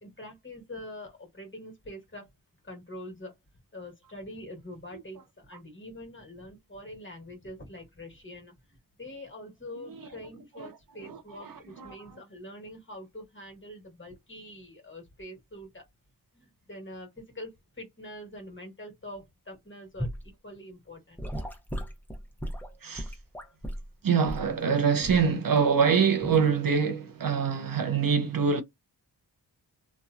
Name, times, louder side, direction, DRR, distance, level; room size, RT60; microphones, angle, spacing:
voice 1, 0.0-2.2 2.6-3.3 3.7-8.5 9.0-15.8 16.3-17.5 17.8-20.1 20.4-21.2, left 1 dB, 30° left, 1.3 m, -44 dB
voice 2, 11.0-12.0 22.8-23.2 24.0-28.6, right 6 dB, 55° right, 0.5 m, -25 dB
Gurgling / Sink (filling or washing) / Liquid, 20.0-20.3 21.2-23.9 24.3-24.5 25.0-25.3 26.2-26.4, equal, 5° left, 0.7 m, -35 dB
2.8 x 2.2 x 2.3 m
cardioid pair, 55°, 42 cm